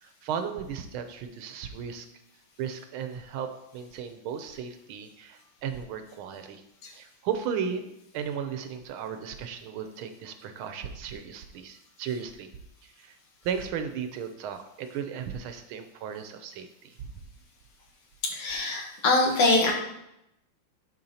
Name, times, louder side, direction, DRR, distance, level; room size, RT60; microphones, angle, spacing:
voice 1, 0.0-2.1 2.6-6.6 6.9-12.5 12.8-13.2 13.4-17.1, right 7 dB, 80° right, 8 dB, 1.4 m, -35 dB
voice 2, 18.2-19.7, left 2 dB, 80° left, 1 dB, 2.1 m, -23 dB
10.5 x 4.4 x 2.8 m, 0.84 s
omnidirectional pair, 2.4 m